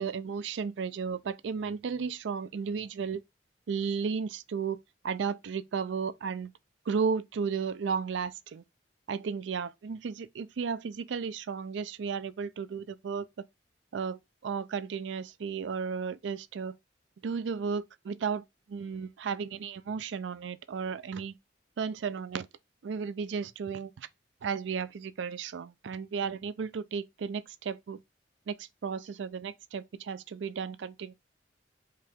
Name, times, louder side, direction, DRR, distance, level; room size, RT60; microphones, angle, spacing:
voice 1, 0.0-3.2 3.7-4.8 5.0-6.5 6.9-8.6 9.1-13.4 13.9-16.8 17.2-21.3 21.8-22.5 22.8-24.1 24.4-28.0 28.5-31.1, right 6 dB, 80° right, 0.4 m, -34 dB
4.7 x 2.8 x 3.5 m
head